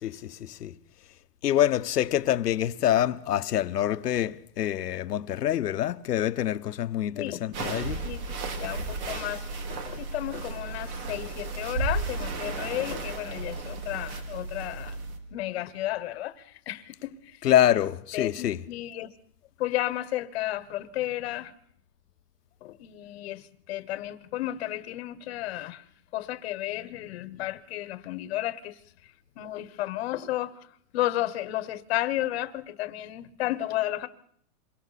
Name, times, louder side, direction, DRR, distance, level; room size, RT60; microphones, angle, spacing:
voice 1, 0.0-0.7 1.4-8.0 17.4-18.6, left 11 dB, 80° left, 1.2 m, -26 dB
voice 2, 7.1-15.0 15.3-17.4 17.7-17.8 18.1-19.1 19.6-21.5 22.6-25.8 26.1-30.7 30.9-34.1, left 15 dB, 40° left, 1.3 m, -33 dB
sound 1, 7.5-15.2, right 3 dB, 65° right, 4.6 m, -34 dB
27.5 x 23.0 x 4.2 m
hypercardioid pair, 165°, 46 cm